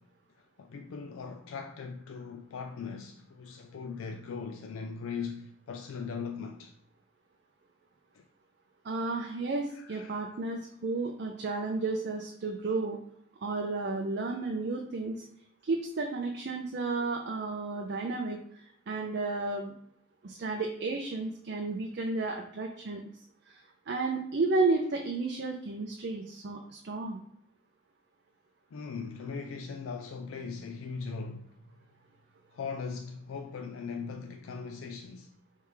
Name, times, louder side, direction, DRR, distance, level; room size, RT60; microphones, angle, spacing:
voice 1, 0.4-6.7 8.1-8.2 9.7-10.3 28.7-31.6 32.5-35.3, left 5 dB, 80° left, 0.4 m, -39 dB
voice 2, 8.8-13.0 13.4-15.2 15.6-19.7 20.2-23.0 23.5-27.2, right 3 dB, 55° right, 0.5 m, -32 dB
3.3 x 3.3 x 4.8 m
head